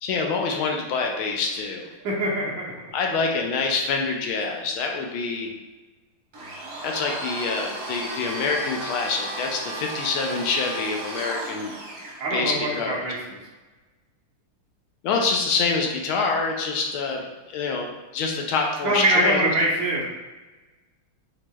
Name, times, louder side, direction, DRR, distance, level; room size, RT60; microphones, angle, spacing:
voice 1, 0.0-1.9 2.9-5.5 6.8-11.7 12.3-13.0 15.0-19.5, left 4 dB, 75° left, 2 dB, 1.4 m, -26 dB
voice 2, 2.0-2.5 12.2-13.4 18.8-20.1, right 1 dB, 65° right, -5 dB, 1.6 m, -23 dB
Domestic sounds home sounds, 6.3-12.2, right 1 dB, 80° right, 2.2 m, -34 dB
6.0 x 3.0 x 2.2 m, 1.2 s
omnidirectional pair, 2.4 m